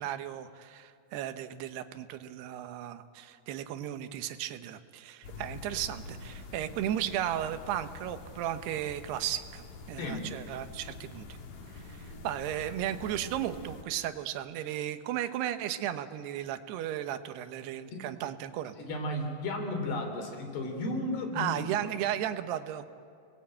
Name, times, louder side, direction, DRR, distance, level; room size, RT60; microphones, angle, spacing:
voice 1, 0.0-11.4 11.7-18.7 21.4-22.9, right 11 dB, 85° right, 10 dB, 3.0 m, -35 dB
sound 1, 5.2-13.8, left 4 dB, 60° left, 3.6 m, -46 dB
voice 2, 18.8-21.9, left 1 dB, 85° left, 3 dB, 5.6 m, -34 dB
29.5 x 20.0 x 8.8 m, 2.4 s
omnidirectional pair, 4.6 m